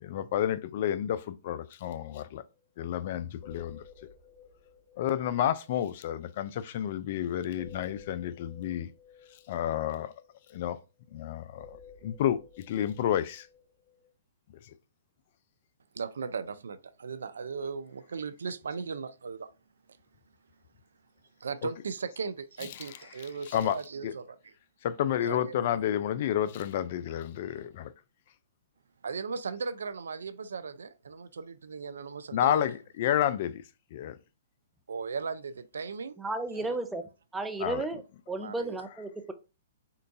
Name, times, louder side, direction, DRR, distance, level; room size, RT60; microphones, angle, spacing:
voice 1, 0.0-2.4 2.8-3.8 5.0-8.9 9.5-10.1 10.5-10.8 11.1-11.8 12.0-12.4 12.7-13.5 23.5-23.8 24.0-24.1 24.8-27.9 32.3-33.6 33.9-34.2 37.6-37.8, left 10 dB, 55° left, 0.3 m, -30 dB
sound 1, 2.5-2.6 2.8-3.1 3.3-6.7 7.6-11.2 11.6-14.1, left 6 dB, 30° left, 1.6 m, -54 dB
voice 2, 15.9-19.5 21.4-24.5 25.0-25.6 29.0-32.7 34.9-36.2 36.6-36.7 38.4-38.8, right 5 dB, 80° right, 0.3 m, -37 dB
voice 3, 36.2-37.0 37.3-38.0 38.3-39.3, right 2 dB, 10° right, 0.5 m, -33 dB
3.7 x 2.3 x 2.6 m
hypercardioid pair, 130°, 0 cm